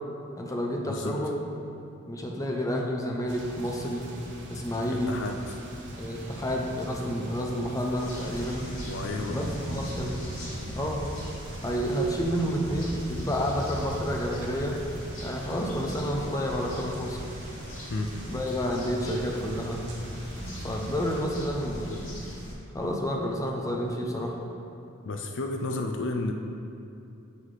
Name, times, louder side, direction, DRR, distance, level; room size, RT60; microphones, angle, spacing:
voice 1, 0.4-1.4 2.1-4.1 4.5-5.1 6.0-8.7 9.3-10.2 10.8-11.0 11.6-14.8 15.2-17.2 18.3-19.9 20.4-22.1 22.7-24.4, equal, 15° left, 0 dB, 0.6 m, -30 dB
sound 1, 3.3-21.2, equal, 55° right, 0.9 m, -39 dB
voice 2, 4.9-5.6 8.9-9.4 17.9-18.1 25.0-26.3, left 2 dB, 60° left, 3 dB, 0.4 m, -32 dB
sound 2, 8.0-22.5, equal, 75° left, 1.6 m, -43 dB
7.8 x 4.1 x 4.8 m, 2.8 s
head